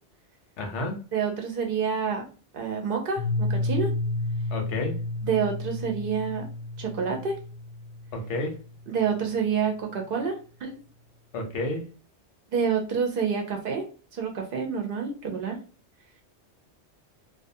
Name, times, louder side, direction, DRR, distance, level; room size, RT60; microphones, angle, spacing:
voice 1, 0.6-1.0 4.5-5.0 8.1-8.6 11.3-11.9, left 1 dB, 90° left, 3 dB, 1.0 m, -30 dB
voice 2, 1.1-2.3 2.5-3.9 5.2-6.4 6.8-7.3 8.9-10.8 12.5-13.8 14.1-15.6, right 6 dB, 60° right, 3 dB, 0.7 m, -28 dB
Piano, 3.2-8.8, left 2 dB, 65° left, 0.7 m, -31 dB
2.4 x 2.2 x 2.6 m, 0.35 s
omnidirectional pair, 1.1 m